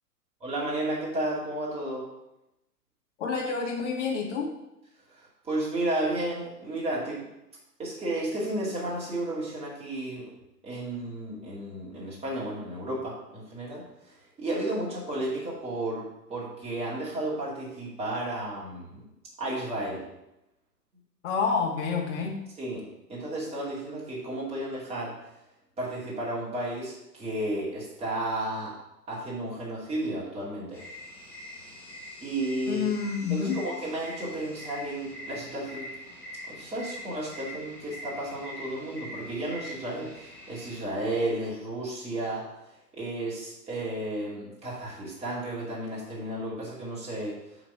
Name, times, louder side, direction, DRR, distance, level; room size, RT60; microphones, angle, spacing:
voice 1, 0.4-2.1 5.2-7.2 7.8-10.3 10.6-19.0 19.4-20.0 22.6-25.3 25.8-28.7 29.1-30.8 32.2-32.9 33.3-35.9 36.5-42.5 42.9-47.4, right 1 dB, 10° right, -6 dB, 2.4 m, -33 dB
voice 2, 3.2-4.5 21.2-22.4 32.7-33.6, left 5 dB, 45° left, 0 dB, 2.0 m, -28 dB
sound 1, 30.7-40.8, left 1 dB, 5° left, 1.7 m, -43 dB
8.6 x 4.0 x 5.6 m, 0.88 s
figure-of-eight pair, 110°, 48 cm